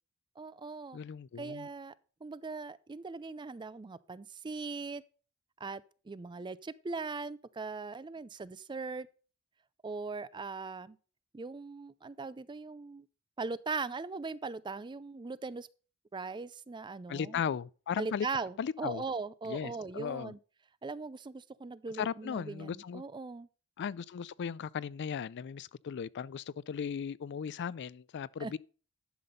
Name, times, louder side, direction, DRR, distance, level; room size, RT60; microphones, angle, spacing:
voice 1, 0.4-1.0 1.4-1.9 2.2-5.0 5.6-9.1 9.8-11.0 11.3-13.1 13.4-15.7 16.1-17.4 18.0-20.4 20.8-23.5 28.4-28.5, right 4 dB, 20° right, 0.4 m, -40 dB
voice 2, 0.9-1.7 17.1-18.3 18.6-19.0 19.5-20.3 22.0-23.0 23.8-28.6, left 7 dB, 55° left, 0.4 m, -37 dB
11.0 x 6.0 x 5.3 m
head